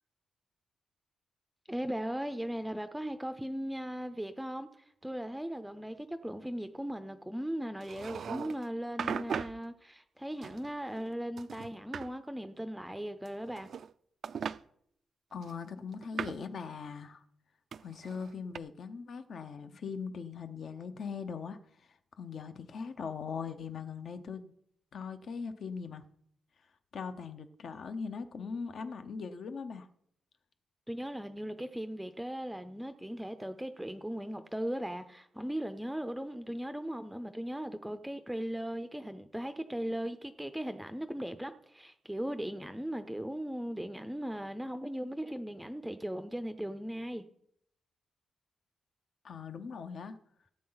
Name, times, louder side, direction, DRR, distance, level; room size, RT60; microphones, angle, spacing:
voice 1, 1.7-13.7 30.9-47.2, equal, 5° right, 9 dB, 0.5 m, -38 dB
sound 1, 7.8-8.6 9.0-9.6 10.4-11.1 11.4-12.1 13.3-13.9 14.2-14.6 15.4-16.5 17.7-18.6, right 7 dB, 55° right, 0.4 m, -39 dB
voice 2, 15.3-17.2 17.8-24.5 24.9-26.0 26.9-29.9 49.2-50.2, left 5 dB, 55° left, 8 dB, 0.8 m, -40 dB
17.5 x 8.6 x 4.0 m, 0.72 s
wide cardioid pair, 145°, 0 cm